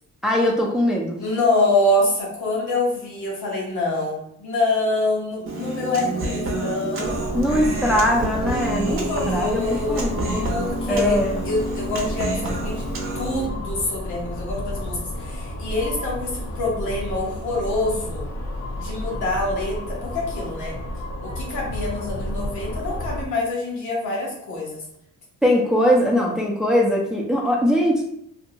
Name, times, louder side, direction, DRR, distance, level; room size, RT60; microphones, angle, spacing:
voice 1, 0.2-1.2 7.3-9.6 9.9-10.5 10.9-11.4 25.4-28.0, equal, ahead, -1 dB, 0.5 m, -21 dB
voice 2, 1.2-7.2 8.9-10.0 10.4-11.2 11.4-12.8 13.1-18.2 18.8-20.8 21.2-24.8, left 2 dB, 80° left, -3 dB, 1.1 m, -25 dB
Human voice, 5.5-13.5, right 2 dB, 45° right, 0.7 m, -28 dB
sound 1, 7.0-23.3, left 1 dB, 55° left, 0.7 m, -31 dB
2.7 x 2.1 x 2.8 m, 0.72 s
cardioid pair, 90°, 30 cm